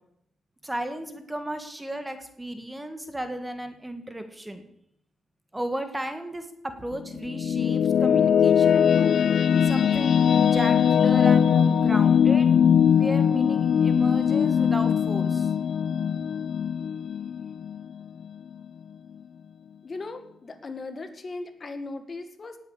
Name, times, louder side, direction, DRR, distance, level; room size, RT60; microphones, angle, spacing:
voice 1, 0.6-4.7 5.5-12.5 12.9-15.5, right 1 dB, 10° right, 7 dB, 1.5 m, -35 dB
sound 1, 6.9-18.2, left 8 dB, 55° left, 0.6 m, -21 dB
voice 2, 19.8-22.6, left 3 dB, 30° left, 7 dB, 1.9 m, -37 dB
18.5 x 8.7 x 8.5 m, 0.75 s
cardioid pair, 135°, 0 cm